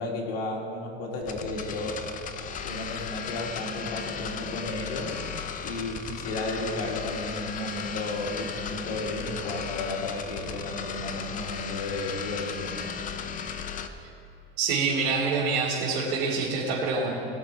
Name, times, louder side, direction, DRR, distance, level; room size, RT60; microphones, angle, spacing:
voice 1, 0.0-2.0 2.6-5.2 5.6-12.9 13.2-13.3, left 2 dB, 80° left, 0 dB, 2.3 m, -33 dB
sound 1, 1.2-13.9, left 7 dB, 25° left, 0.6 m, -36 dB
voice 2, 14.6-17.1, right 4 dB, 65° right, -7 dB, 2.8 m, -26 dB
19.0 x 6.4 x 4.8 m, 2.7 s
supercardioid pair, 130°, 30 cm